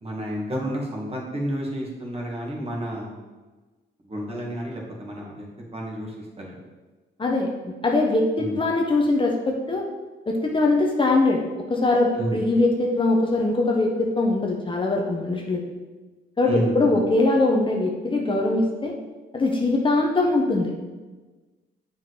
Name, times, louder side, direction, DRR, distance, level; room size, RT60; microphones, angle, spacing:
voice 1, 0.0-3.2 4.0-6.6 8.4-8.6 12.1-12.4 16.5-17.0, equal, 30° right, -2 dB, 2.4 m, -30 dB
voice 2, 7.2-9.8 10.3-11.4 11.7-15.6 16.4-18.9 19.3-20.7, left 2 dB, 25° left, 0 dB, 1.1 m, -22 dB
7.5 x 5.6 x 5.0 m, 1.2 s
cardioid pair, 90°, 20 cm